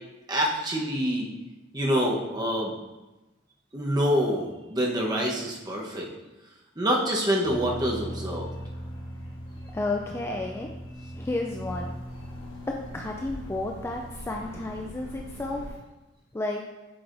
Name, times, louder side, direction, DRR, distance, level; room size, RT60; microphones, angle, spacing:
voice 1, 0.3-1.3 1.7-2.7 3.7-6.1 6.8-8.5, equal, 20° right, -2 dB, 0.9 m, -26 dB
sound 1, 7.4-15.7, equal, 85° left, 1.4 m, -39 dB
voice 2, 9.7-10.7 11.1-11.9 12.9-15.6 16.3-16.6, left 2 dB, 15° left, 1 dB, 0.3 m, -32 dB
8.0 x 4.8 x 2.6 m, 1.1 s
head